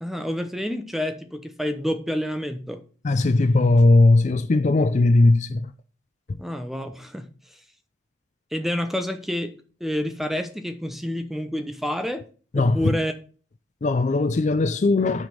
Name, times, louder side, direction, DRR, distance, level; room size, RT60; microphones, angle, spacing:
voice 1, 0.0-2.8 6.4-7.3 8.5-9.5 9.8-12.2 12.5-13.1, equal, ahead, 0.7 m, -28 dB
voice 2, 3.0-5.7 6.3-6.4 12.5-13.0 13.8-15.3, left 2 dB, 35° left, 0.4 m, -19 dB
9.3 x 5.0 x 5.3 m
head